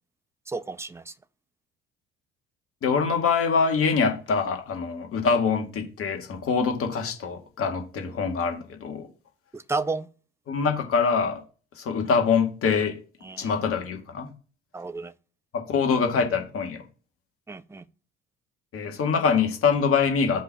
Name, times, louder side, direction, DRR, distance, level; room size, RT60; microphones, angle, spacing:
voice 1, 0.5-1.1 9.5-10.1 13.2-13.5 14.7-15.1 17.5-17.8, right 3 dB, 10° right, 0.6 m, -32 dB
voice 2, 2.8-9.1 10.5-11.4 11.8-13.0 13.4-14.3 15.5-16.8 18.7-20.4, left 5 dB, 45° left, 2.0 m, -24 dB
5.3 x 4.0 x 6.0 m
figure-of-eight pair, 55°, 32 cm